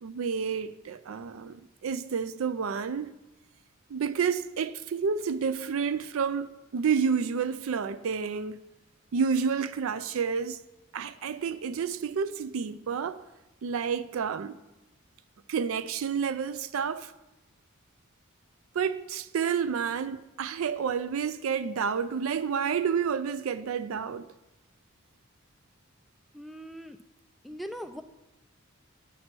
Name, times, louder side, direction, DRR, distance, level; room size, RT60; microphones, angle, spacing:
voice 1, 0.0-3.1 3.9-8.6 9.1-10.6 10.9-13.2 13.6-14.6 15.5-17.1 18.7-24.3, right 6 dB, 80° right, 0.4 m, -30 dB
voice 2, 26.3-27.0 27.4-28.0, equal, ahead, 0.3 m, -40 dB
9.6 x 4.4 x 6.0 m
head